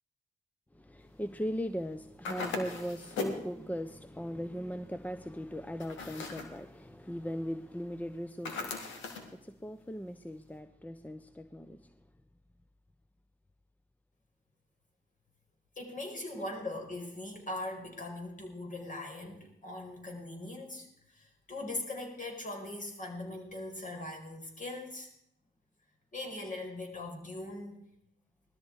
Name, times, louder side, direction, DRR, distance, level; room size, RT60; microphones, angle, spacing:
voice 1, 0.7-8.8 9.3-11.9, equal, 10° left, 10 dB, 0.9 m, -39 dB
sound 1, 2.2-3.5 5.8-6.6 8.4-9.3, left 4 dB, 90° left, 1.9 m, -38 dB
voice 2, 15.8-25.1 26.1-27.8, left 2 dB, 45° left, 2 dB, 5.2 m, -40 dB
19.0 x 13.0 x 4.9 m, 0.77 s
supercardioid pair, 50°, 19 cm